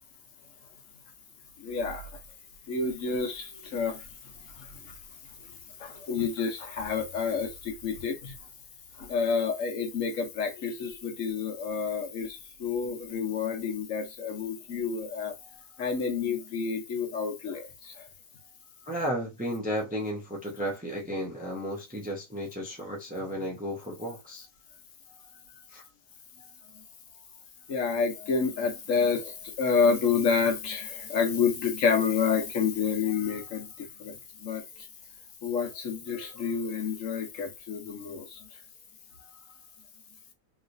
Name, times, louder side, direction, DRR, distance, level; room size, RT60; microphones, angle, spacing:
voice 1, 1.6-2.0 2.7-4.0 5.8-8.3 9.1-15.3 15.8-17.7 27.7-33.7 34.0-34.1 34.4-34.6 35.4-38.2, left 5 dB, 70° left, 1.2 m, -29 dB
voice 2, 18.9-24.5 25.7-25.8, equal, 10° right, 0.5 m, -33 dB
3.1 x 2.9 x 2.6 m
omnidirectional pair, 1.4 m